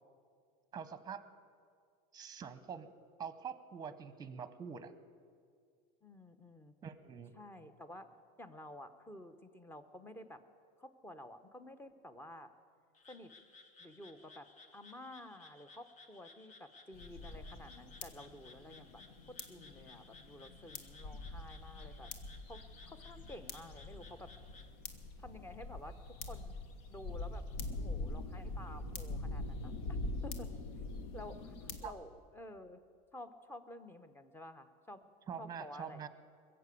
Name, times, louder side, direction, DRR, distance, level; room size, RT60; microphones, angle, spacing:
voice 1, 0.7-1.2 2.1-2.9 3.2-4.9 6.8-7.3 31.8-31.9 35.3-36.1, right 7 dB, 20° right, 13 dB, 1.0 m, -45 dB
voice 2, 6.0-6.7 7.3-8.1 8.4-10.4 10.8-12.5 13.1-13.3 13.8-14.5 14.7-19.0 19.3-22.1 22.5-24.3 25.2-26.5 26.9-27.4 27.7-30.0 30.2-30.5 31.1-32.8 33.1-35.0 35.4-36.0, left 1 dB, 10° left, 11 dB, 0.9 m, -51 dB
Frog, 12.9-24.7, left 3 dB, 35° left, 1.3 m, -60 dB
sound 1, 16.9-31.9, left 2 dB, 70° left, 1.5 m, -44 dB
21.0 x 7.7 x 8.3 m, 2.2 s
supercardioid pair, 135°, 20 cm